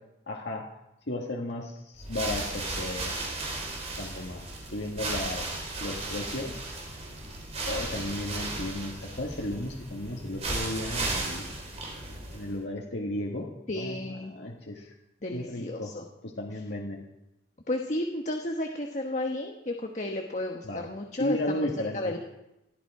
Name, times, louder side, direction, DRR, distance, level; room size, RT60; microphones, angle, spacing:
voice 1, 0.3-0.6 1.1-3.1 4.0-4.4 4.7-6.6 7.6-11.4 12.3-13.5 13.7-14.0 14.3-14.9 15.3-15.9 16.2-17.1 20.6-20.8 21.2-22.1, left 1 dB, 75° left, -1 dB, 1.8 m, -34 dB
sound 1, 2.0-12.6, right 2 dB, 35° right, 3.1 m, -35 dB
voice 2, 13.7-14.3 15.2-16.1 17.7-21.6 21.9-22.3, left 1 dB, 40° left, 3 dB, 1.2 m, -32 dB
20.0 x 13.5 x 4.9 m, 0.91 s
head